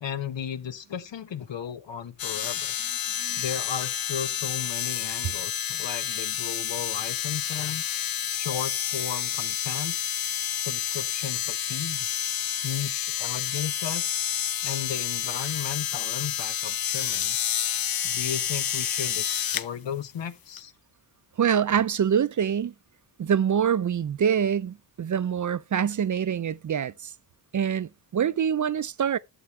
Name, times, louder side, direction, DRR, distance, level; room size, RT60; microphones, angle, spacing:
voice 1, 0.0-2.8 3.4-7.8 8.3-10.0 10.5-12.1 12.6-14.2 14.6-17.4 18.0-20.7, left 8 dB, 70° left, 1.1 m, -35 dB
sound 1, 2.2-19.7 20.6-20.7, left 9 dB, 50° left, 0.7 m, -29 dB
voice 2, 21.4-22.7 23.2-27.1 27.5-29.2, right 8 dB, 40° right, 0.5 m, -25 dB
11.5 x 7.0 x 3.2 m
cardioid pair, 55°, 45 cm